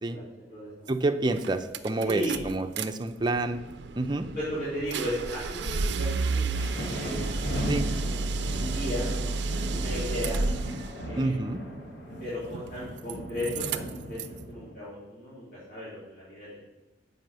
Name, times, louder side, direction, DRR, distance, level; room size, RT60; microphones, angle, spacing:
voice 1, 0.1-0.9 2.0-2.4 4.3-6.1 6.3-6.6 6.9-7.3 8.0-9.1 9.7-10.4 11.0-11.3 12.2-14.2 14.5-16.6, equal, 55° left, -11 dB, 3.4 m, -35 dB
voice 2, 0.9-3.6 3.9-4.3 7.7-7.9 11.2-11.6, right 2 dB, 25° right, 7 dB, 0.5 m, -28 dB
sound 1, 0.9-1.0 1.3-2.9 3.2-11.0 12.4-13.1 13.4-14.4, right 3 dB, 75° right, 0.5 m, -31 dB
sound 2, 6.5-14.7, equal, 85° left, 2.3 m, -37 dB
7.6 x 5.5 x 6.8 m, 1.1 s
head